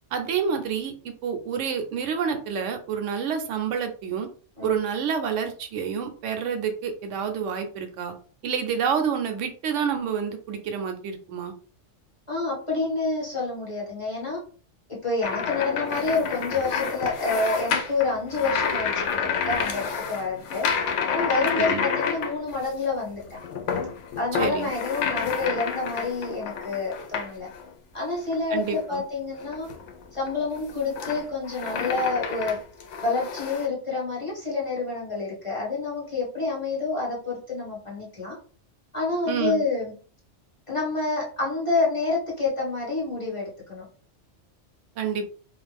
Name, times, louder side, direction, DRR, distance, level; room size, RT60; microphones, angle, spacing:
voice 1, 0.1-4.3 4.6-8.1 8.4-11.5 21.6-21.9 24.3-24.7 28.5-29.0 39.3-39.6 45.0-45.3, right 7 dB, 90° right, 6 dB, 1.0 m, -28 dB
voice 2, 12.3-14.4 15.0-19.0 19.5-20.7 21.1-23.2 24.2-27.5 27.9-29.7 30.1-32.6 33.0-38.3 38.9-39.9 40.7-43.8, left 3 dB, 25° left, -5 dB, 1.2 m, -28 dB
sound 1, 15.2-22.8 23.2-27.7 28.2-28.8 29.4-33.7, left 6 dB, 80° left, 0.9 m, -29 dB
2.4 x 2.4 x 3.3 m, 0.41 s
omnidirectional pair, 1.2 m